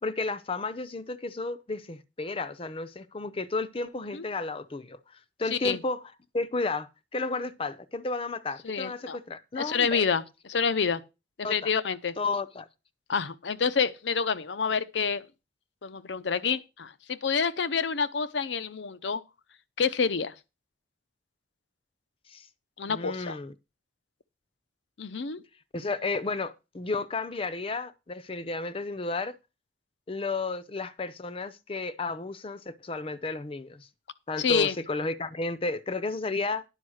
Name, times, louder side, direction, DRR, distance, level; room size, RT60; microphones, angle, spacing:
voice 1, 0.0-6.0 6.3-10.1 11.4-11.7 12.2-12.7 22.3-22.5 22.9-23.5 25.7-29.4 30.1-33.9 34.3-36.6, left 3 dB, 30° left, 0.6 m, -32 dB
voice 2, 8.6-9.2 9.6-11.0 11.5-12.1 13.1-15.2 15.8-19.2 19.8-20.3 22.8-23.4 25.0-25.4 34.4-34.7, left 6 dB, 85° left, 0.7 m, -28 dB
10.0 x 5.4 x 6.3 m
head